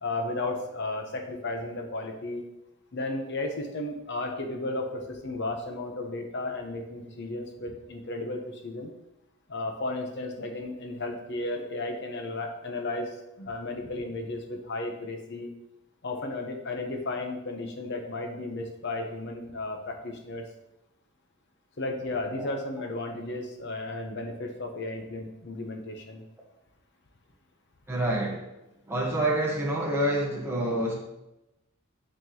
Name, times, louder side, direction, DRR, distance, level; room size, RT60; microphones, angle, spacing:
voice 1, 0.0-2.4 2.9-8.9 9.5-15.5 16.0-20.4 21.8-26.2, left 2 dB, 50° left, 3 dB, 0.9 m, -34 dB
voice 2, 27.9-28.5 28.9-30.9, right 1 dB, 10° right, -3 dB, 1.2 m, -27 dB
9.2 x 4.4 x 3.0 m, 0.91 s
head